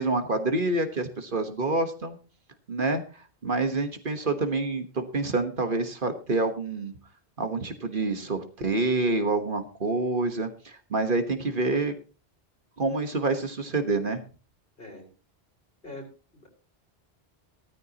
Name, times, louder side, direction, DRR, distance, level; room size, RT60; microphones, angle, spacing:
voice 1, 0.0-2.2 2.7-3.0 3.4-6.9 7.4-11.9 12.8-14.2, right 3 dB, 55° right, 7 dB, 1.5 m, -27 dB
voice 2, 14.8-15.1 15.8-16.1 16.3-16.5, left 2 dB, 65° left, 2 dB, 4.8 m, -42 dB
15.5 x 14.0 x 2.9 m, 0.36 s
omnidirectional pair, 1.1 m